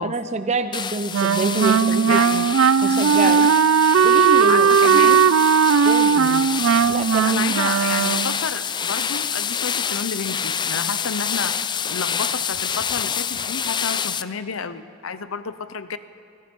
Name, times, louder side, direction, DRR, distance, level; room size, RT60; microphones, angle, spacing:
voice 1, 0.0-2.2 2.8-3.5 4.0-5.2 5.8-6.1 6.9-7.4, right 3 dB, 35° right, 10 dB, 0.6 m, -26 dB
sound 1, 0.7-14.2, left 7 dB, 20° left, 0.4 m, -27 dB
Wind instrument woodwind instrument, 1.1-8.4, right 7 dB, 75° right, 0.4 m, -17 dB
voice 2, 1.9-3.5 4.5-5.3 6.1-6.5 7.2-16.0, left 5 dB, 80° left, 13 dB, 0.7 m, -31 dB
24.0 x 20.5 x 5.4 m, 2.6 s
head